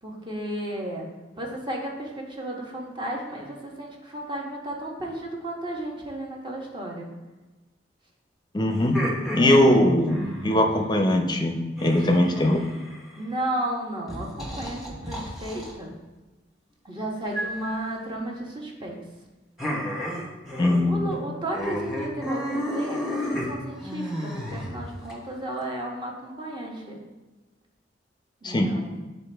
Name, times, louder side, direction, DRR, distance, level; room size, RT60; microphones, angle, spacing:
voice 1, 0.0-1.0 1.4-7.1 9.3-9.8 12.0-12.2 13.2-15.9 16.8-19.0 20.8-27.0 28.4-29.0, right 1 dB, 25° right, -1 dB, 1.2 m, -33 dB
voice 2, 8.5-9.0 9.3-12.6 20.6-21.2 28.4-28.7, left 1 dB, 25° left, 4 dB, 0.6 m, -21 dB
sound 1, 8.7-10.7 11.8-13.2 14.1-15.7 17.3-17.8 19.6-20.8 21.1-21.2 21.5-25.1, equal, ahead, 1.4 m, -32 dB
9.1 x 4.1 x 3.4 m, 1.2 s
head